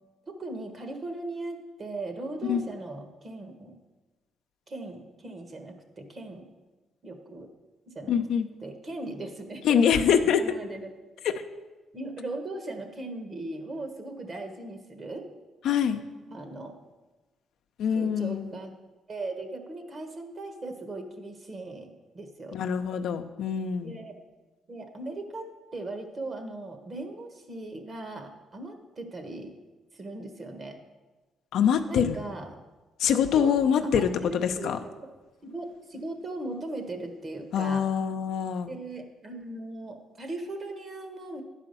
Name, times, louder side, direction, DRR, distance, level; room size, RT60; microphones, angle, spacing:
voice 1, 0.3-3.8 4.7-6.5 7.0-7.5 7.9-8.2 8.6-10.9 11.9-15.3 16.3-16.7 17.9-18.7 19.1-22.6 23.8-24.2 24.7-29.6 29.9-30.8 31.9-32.6 33.3-33.5 33.8-35.1 35.4-37.8 38.6-41.4, right 2 dB, 40° right, 6 dB, 1.4 m, -38 dB
voice 2, 8.1-8.5 9.6-10.4 11.2-11.3 15.6-16.0 17.8-18.5 22.5-24.0 31.5-32.2 33.0-34.8 37.5-38.7, left 8 dB, 75° left, 7 dB, 0.6 m, -24 dB
10.5 x 4.9 x 6.8 m, 1.2 s
cardioid pair, 90°, 0 cm